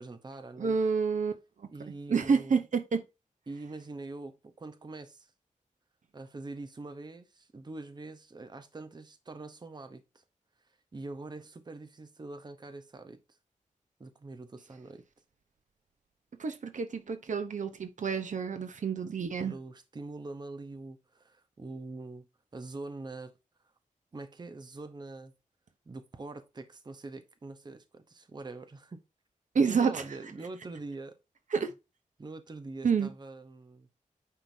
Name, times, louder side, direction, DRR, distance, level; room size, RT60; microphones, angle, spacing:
voice 1, 0.0-0.8 1.7-2.6 3.5-5.3 6.1-10.2 10.9-13.2 14.0-15.0 19.4-22.3 22.5-23.3 24.1-25.3 25.9-29.0 29.6-31.2 32.2-33.9, right 3 dB, 30° right, 0.9 m, -44 dB
voice 2, 0.6-1.3 1.6-1.7 2.1-3.0 16.4-19.5 29.5-30.0 31.5-31.7 32.8-33.1, right 5 dB, 65° right, 0.9 m, -28 dB
9.2 x 5.9 x 2.8 m
wide cardioid pair, 155°, 14 cm